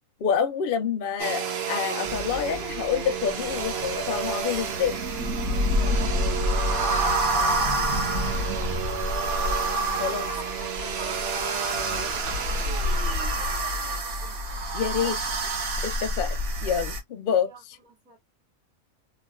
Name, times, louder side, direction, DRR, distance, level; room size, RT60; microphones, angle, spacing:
voice 1, 0.2-5.0 10.0-10.2 14.7-15.1 15.8-16.4 16.6-17.5, left 7 dB, 60° left, 0.6 m, -27 dB
Domestic sounds home sounds, 1.2-14.0, right 7 dB, 55° right, 0.9 m, -32 dB
sound 1, 2.0-17.0, equal, 75° right, 1.5 m, -28 dB
voice 2, 5.5-9.4 9.9-14.4 14.9-15.6 17.5-18.2, right 2 dB, 5° right, 1.3 m, -46 dB
3.2 x 2.8 x 2.2 m
omnidirectional pair, 1.5 m